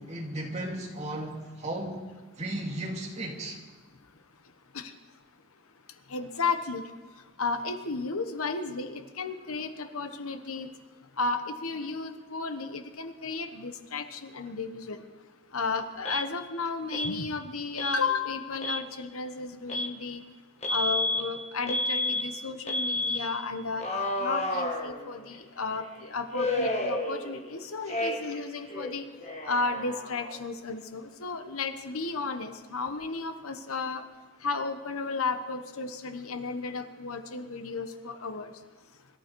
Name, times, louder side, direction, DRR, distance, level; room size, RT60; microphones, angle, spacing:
voice 1, 0.0-2.0 2.4-3.6 27.9-28.0, right 1 dB, 30° right, -1 dB, 2.5 m, -35 dB
voice 2, 6.1-6.9 7.4-10.7 11.2-15.0 15.5-20.2 20.7-23.9 24.2-29.1 29.4-34.0 34.4-38.5, left 4 dB, 80° left, 8 dB, 1.2 m, -33 dB
Alarm, 16.0-16.3 16.9-17.1 17.8-18.0 18.5-18.8 19.7-19.9 20.6-21.2 21.7-22.2 22.7-23.2 23.8-25.3 26.3-27.5 27.9-28.4 28.7-30.4, left 1 dB, 30° left, 1.7 m, -30 dB
24.5 x 12.5 x 4.6 m, 1.4 s
head